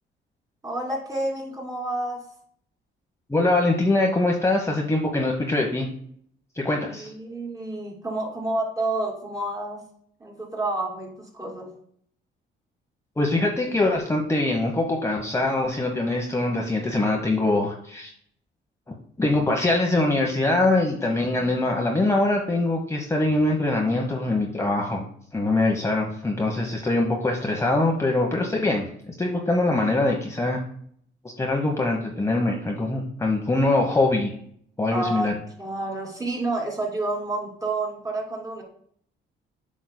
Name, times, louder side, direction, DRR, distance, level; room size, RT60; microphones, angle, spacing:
voice 1, 0.6-2.2 6.9-9.8 10.2-11.7 34.9-38.6, right 2 dB, 20° right, -1 dB, 2.7 m, -29 dB
voice 2, 3.3-5.9 6.6-7.1 13.2-18.1 19.2-25.0 25.3-28.9 29.2-30.6 31.4-34.3 34.8-35.3, left 2 dB, 15° left, 0 dB, 1.0 m, -23 dB
7.9 x 6.2 x 2.2 m, 0.64 s
cardioid pair, 90°, 20 cm